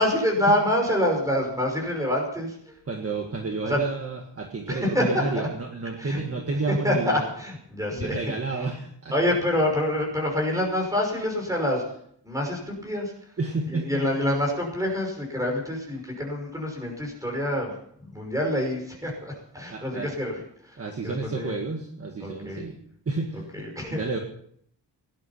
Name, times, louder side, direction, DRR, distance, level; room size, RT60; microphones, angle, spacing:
voice 1, 0.0-2.8 3.6-3.8 4.7-5.5 6.0-6.2 6.7-8.2 9.1-11.8 12.2-13.1 13.7-17.7 18.0-20.8 21.0-21.6 22.2-22.6 23.5-24.0, left 1 dB, 10° right, 0 dB, 5.8 m, -26 dB
voice 2, 2.9-7.3 7.9-9.1 13.4-14.0 19.7-20.1 20.8-22.8 23.0-23.4 23.9-24.2, right 3 dB, 35° right, 2 dB, 1.7 m, -30 dB
18.0 x 11.5 x 5.8 m, 0.67 s
wide cardioid pair, 165°, 42 cm